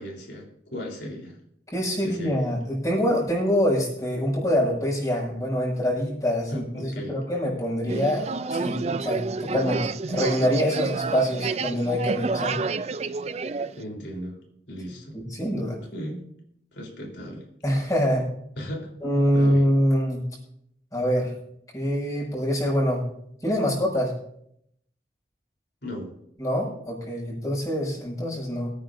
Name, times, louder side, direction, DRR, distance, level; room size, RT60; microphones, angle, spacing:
voice 1, 0.0-1.4 2.0-2.5 6.5-7.2 13.8-14.4 14.7-15.2 15.9-16.2 16.7-17.5 18.6-18.9 19.3-19.6 25.8-26.2, equal, 70° left, -1 dB, 3.9 m, -36 dB
voice 2, 1.7-12.6 15.1-15.8 17.6-18.3 19.0-20.2 20.9-21.3 21.7-23.0 23.4-24.1 26.4-28.7, equal, 20° left, -3 dB, 6.1 m, -25 dB
sound 1, 7.9-13.8, right 4 dB, 35° right, 0.4 m, -29 dB
23.5 x 9.5 x 2.7 m, 0.71 s
head